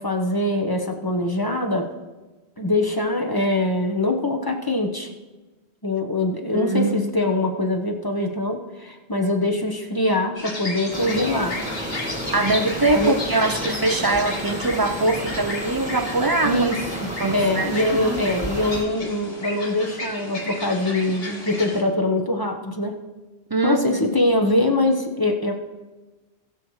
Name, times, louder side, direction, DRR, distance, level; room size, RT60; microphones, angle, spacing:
voice 1, 0.0-1.9 2.6-5.1 5.8-11.6 12.9-13.1 16.4-22.9 23.6-25.5, left 1 dB, 20° left, 2 dB, 1.1 m, -23 dB
voice 2, 6.5-7.3 12.3-16.7 17.2-18.2 23.5-24.0, right 2 dB, 25° right, 8 dB, 0.6 m, -23 dB
sound 1, 10.3-21.8, left 2 dB, 65° left, 2.5 m, -33 dB
sound 2, 10.9-18.8, equal, 5° right, 1.6 m, -32 dB
20.0 x 7.6 x 3.2 m, 1.2 s
omnidirectional pair, 1.1 m